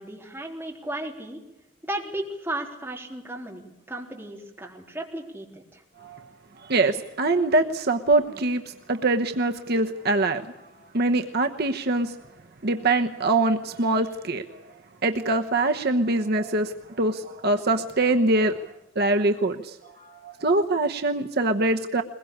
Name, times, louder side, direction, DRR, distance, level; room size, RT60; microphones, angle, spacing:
voice 1, 0.0-1.4 1.8-5.8, right 1 dB, 10° right, 0 dB, 3.8 m, -35 dB
voice 2, 6.6-10.5 10.9-12.2 12.6-14.4 15.0-18.6 19.0-22.0, right 2 dB, 55° right, 5 dB, 1.1 m, -24 dB
22.0 x 21.5 x 8.6 m, 0.91 s
head